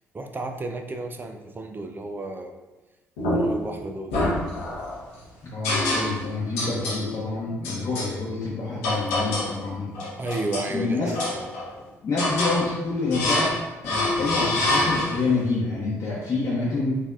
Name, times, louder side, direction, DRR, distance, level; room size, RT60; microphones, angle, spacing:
voice 1, 0.1-2.5 3.3-4.1 10.2-11.6, right 2 dB, 30° right, 5 dB, 0.5 m, -32 dB
sound 1, 3.2-3.7 4.1-5.0 5.6-6.3 6.6-7.0 7.6-8.1 8.8-9.6 9.9-10.7 11.1-11.8 12.2-12.6 13.1-13.6 13.8-15.3, left 1 dB, 80° left, 0.9 m, -26 dB
voice 2, 5.4-9.9 10.2-10.3 10.7-11.1 12.0-13.6 13.8-17.0, left 3 dB, 45° left, -8 dB, 0.9 m, -27 dB
4.4 x 2.7 x 2.4 m, 1.1 s
hypercardioid pair, 45°, 7 cm